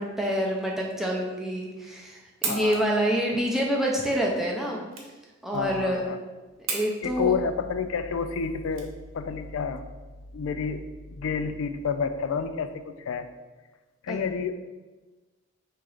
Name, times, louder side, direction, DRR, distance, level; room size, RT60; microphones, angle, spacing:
voice 1, 0.0-4.8 5.4-6.1 6.7-7.3 14.1-14.2, equal, ahead, -2 dB, 0.6 m, -27 dB
sound 1, 2.2-9.5, right 5 dB, 80° right, 0.9 m, -38 dB
voice 2, 2.4-2.9 3.3-3.4 4.1-4.2 5.5-6.2 7.0-9.9 10.3-13.3 14.0-14.5, left 5 dB, 85° left, 10 dB, 0.4 m, -30 dB
3.7 x 2.9 x 4.8 m, 1.2 s
head